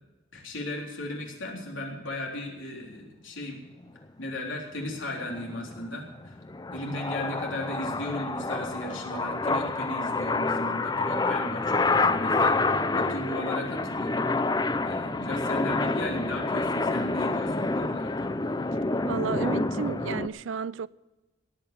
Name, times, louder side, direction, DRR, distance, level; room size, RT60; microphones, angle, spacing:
voice 1, 0.3-3.6 4.2-6.3 6.7-12.6 12.9-14.2 14.5-18.3, left 1 dB, 85° left, 3.7 m, -36 dB
sound 1, 5.0-20.3, left 3 dB, 20° left, 0.5 m, -28 dB
voice 2, 19.0-20.9, right 6 dB, 80° right, 0.4 m, -32 dB
17.5 x 9.1 x 6.9 m
head